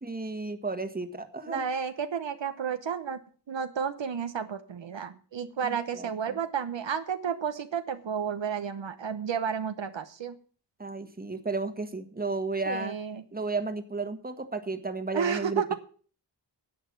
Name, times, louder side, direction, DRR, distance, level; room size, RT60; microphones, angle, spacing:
voice 1, 0.0-1.6 5.6-6.4 10.8-13.0 13.3-15.7, right 3 dB, 20° right, 7 dB, 1.5 m, -33 dB
voice 2, 1.5-3.2 3.5-10.4 12.7-13.2 15.1-15.7, right 7 dB, 75° right, 9 dB, 1.1 m, -32 dB
11.0 x 7.8 x 7.4 m, 0.42 s
wide cardioid pair, 95°, 44 cm